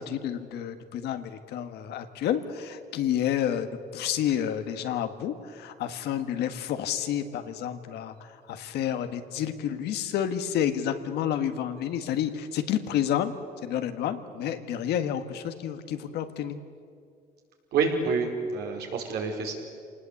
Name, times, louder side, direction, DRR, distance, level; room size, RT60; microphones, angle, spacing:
voice 1, 0.0-13.3 13.6-16.6, left 10 dB, 80° left, 9 dB, 1.7 m, -30 dB
voice 2, 17.7-19.5, right 5 dB, 70° right, 1 dB, 4.7 m, -27 dB
26.5 x 19.0 x 8.5 m, 2.3 s
cardioid pair, 110°, 17 cm